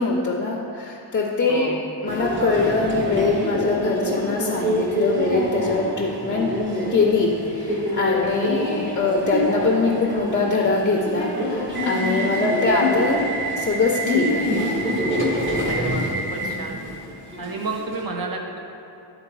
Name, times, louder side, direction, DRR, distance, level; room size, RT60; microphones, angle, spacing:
voice 1, 0.0-1.7 2.0-6.5 6.9-13.3 13.6-14.6 16.4-16.6, left 3 dB, 25° left, -1 dB, 0.5 m, -23 dB
voice 2, 1.5-1.8 15.6-16.0 16.3-16.8 17.4-18.6, right 4 dB, 50° right, 1 dB, 0.9 m, -30 dB
Subway metro underground, 2.1-18.0, equal, 25° right, 1.2 m, -26 dB
10.5 x 3.9 x 4.6 m, 2.8 s
wide cardioid pair, 170°, 45 cm